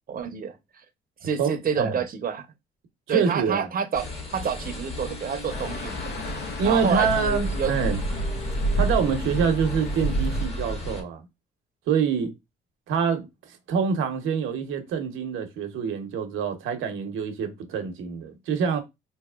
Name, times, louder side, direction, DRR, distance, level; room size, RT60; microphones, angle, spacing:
voice 1, 0.1-0.8 1.2-2.5 3.1-4.1 4.3-6.0 6.6-7.7 8.1-8.3, right 7 dB, 45° right, 0.7 m, -28 dB
voice 2, 1.4-2.0 3.1-3.7 6.6-8.0 8.8-11.2 11.9-12.3 12.9-13.3 13.7-18.8, right 6 dB, 90° right, 0.8 m, -26 dB
sound 1, 3.9-11.0, left 1 dB, 30° left, 1.3 m, -35 dB
sound 2, 5.5-10.5, right 1 dB, 55° left, 0.7 m, -29 dB
4.1 x 2.9 x 2.3 m
cardioid pair, 90°, 20 cm